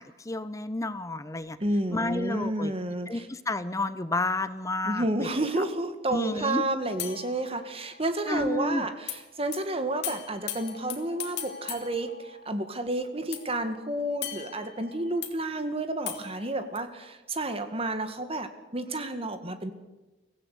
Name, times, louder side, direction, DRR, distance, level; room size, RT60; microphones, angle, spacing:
voice 1, 0.0-1.6 1.9-2.7 3.1-5.3 5.6-5.7 6.1-6.6 8.3-8.9, left 2 dB, 15° left, 13 dB, 0.7 m, -30 dB
voice 2, 1.6-3.2 4.9-18.5 18.7-19.7, right 1 dB, 30° right, 8 dB, 1.9 m, -30 dB
sound 1, 7.0-8.2 9.1-9.2 9.5-9.6 10.0-12.8 13.3-15.3 16.1-16.8, left 10 dB, 60° left, 2.8 m, -39 dB
23.5 x 16.0 x 8.4 m, 1.1 s
head